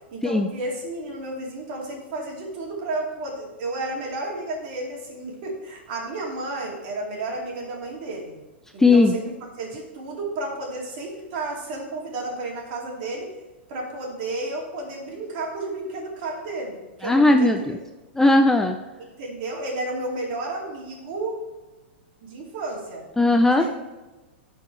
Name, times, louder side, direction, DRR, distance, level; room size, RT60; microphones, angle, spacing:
voice 1, 0.1-8.4 8.7-13.3 13.7-17.8 19.1-21.4 22.2-23.0 23.6-23.8, right 2 dB, 50° right, -1 dB, 2.5 m, -32 dB
voice 2, 8.8-9.1 17.0-17.8 18.2-18.7 23.2-23.7, left 2 dB, 5° left, 5 dB, 0.4 m, -17 dB
12.0 x 4.5 x 3.2 m, 1.1 s
hypercardioid pair, 110°, 6 cm